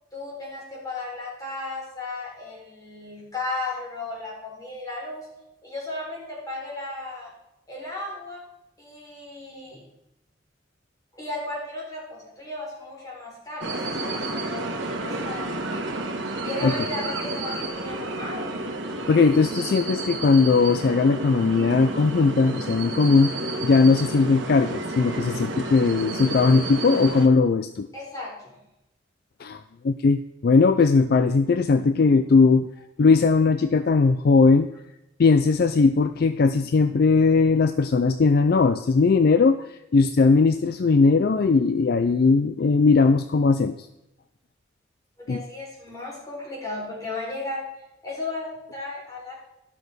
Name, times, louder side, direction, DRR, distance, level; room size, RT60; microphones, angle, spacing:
voice 1, 0.1-5.3 5.6-7.3 7.7-8.4 8.8-9.8 11.1-14.0 14.3-15.6 16.4-18.7 27.9-28.6 45.2-47.6 48.0-49.3, left 2 dB, 20° left, -5 dB, 4.1 m, -35 dB
sound 1, 13.6-27.3, right 2 dB, 70° right, 1.4 m, -31 dB
voice 2, 19.1-23.4 23.6-27.9 29.4-32.7 33.0-34.7 35.2-43.8 45.3-45.4, left 4 dB, 55° left, 10 dB, 0.4 m, -19 dB
12.5 x 6.3 x 5.1 m, 0.89 s
head